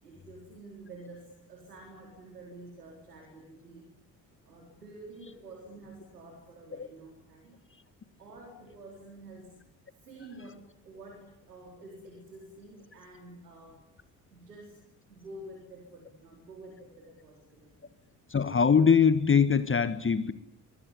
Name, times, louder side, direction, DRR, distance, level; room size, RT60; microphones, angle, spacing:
voice 1, 0.0-3.9 4.4-7.6 8.2-9.6 10.0-13.8 14.3-14.8 15.1-17.9, right 2 dB, 85° right, 2 dB, 4.3 m, -49 dB
voice 2, 18.3-20.3, left 6 dB, 25° left, 13 dB, 1.6 m, -22 dB
24.0 x 24.0 x 9.8 m, 0.77 s
figure-of-eight pair, 45°, 46 cm